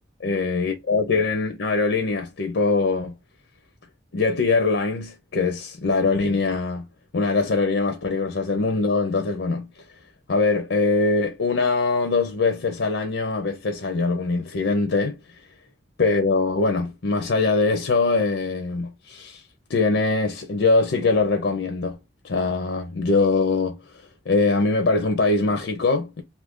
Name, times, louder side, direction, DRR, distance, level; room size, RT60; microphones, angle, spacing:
voice 1, 0.2-3.2 4.1-6.9 7.1-9.7 10.3-15.4 16.0-19.4 19.7-22.0 22.2-26.2, left 3 dB, 70° left, 0.6 m, -22 dB
2.8 x 2.5 x 3.5 m
head